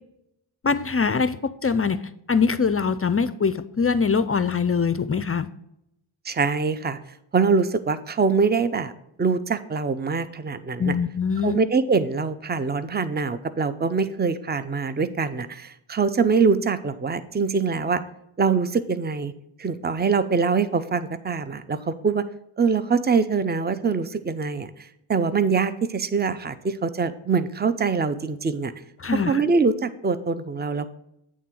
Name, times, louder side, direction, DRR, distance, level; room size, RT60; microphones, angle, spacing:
voice 1, 0.6-2.0 2.3-5.5 10.8-11.6 29.0-29.4, left 5 dB, 30° left, 13 dB, 0.4 m, -23 dB
voice 2, 6.2-7.0 7.3-8.9 9.2-10.9 11.4-18.0 18.4-19.3 19.6-22.2 22.6-28.7 29.1-30.9, right 5 dB, 20° right, 13 dB, 0.5 m, -24 dB
8.5 x 3.7 x 6.1 m, 0.81 s
wide cardioid pair, 70°, 50 cm